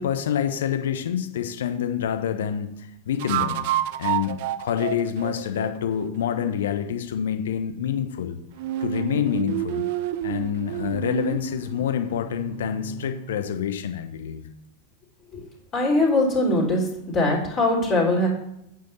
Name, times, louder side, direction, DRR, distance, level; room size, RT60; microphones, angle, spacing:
voice 1, 0.0-3.6 4.0-8.4 8.8-9.9 10.2-14.4, left 9 dB, 60° left, 8 dB, 1.1 m, -27 dB
sound 1, 0.9-1.0 3.2-6.6 8.6-13.4, right 12 dB, 50° right, 0.5 m, -30 dB
voice 2, 15.7-16.9 17.1-18.3, left 2 dB, 30° left, -3 dB, 3.5 m, -21 dB
9.2 x 4.9 x 7.0 m, 0.80 s
figure-of-eight pair, 90°, 0 cm